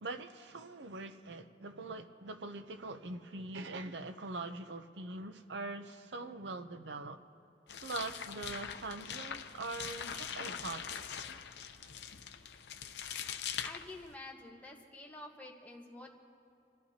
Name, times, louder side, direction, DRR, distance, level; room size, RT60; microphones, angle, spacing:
voice 1, 0.0-7.2 7.8-10.9, right 3 dB, 90° right, 0.7 m, -43 dB
sound 1, 7.7-14.1, left 8 dB, 80° left, 0.7 m, -42 dB
voice 2, 13.3-16.1, left 2 dB, 10° left, 1.3 m, -49 dB
27.5 x 13.5 x 2.9 m
head